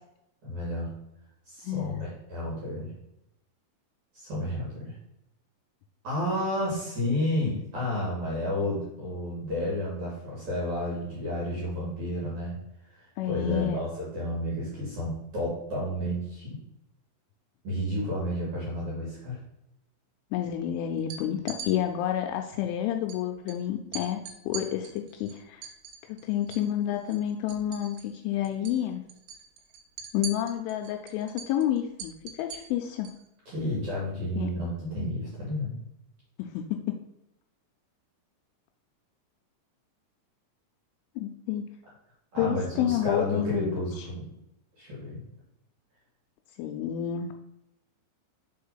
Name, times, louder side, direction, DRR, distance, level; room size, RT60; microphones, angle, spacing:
voice 1, 0.4-0.9 1.5-2.9 4.1-4.9 6.0-12.6 12.9-16.6 17.6-19.4 33.5-35.7 42.3-44.3 44.8-45.2, left 1 dB, 50° right, -5 dB, 2.3 m, -31 dB
voice 2, 1.6-2.1 13.2-13.8 20.3-25.7 26.1-29.0 30.1-33.1 34.4-34.5 36.4-37.0 41.2-41.7 42.4-44.1 46.6-47.3, left 11 dB, 85° left, 4 dB, 2.8 m, -30 dB
sound 1, 21.0-21.7 23.1-23.2 23.5-23.6 23.9-26.7 27.0-28.2 28.5-28.8 29.1-33.2, right 6 dB, 75° right, 3.2 m, -42 dB
6.7 x 4.3 x 5.6 m, 0.86 s
omnidirectional pair, 5.9 m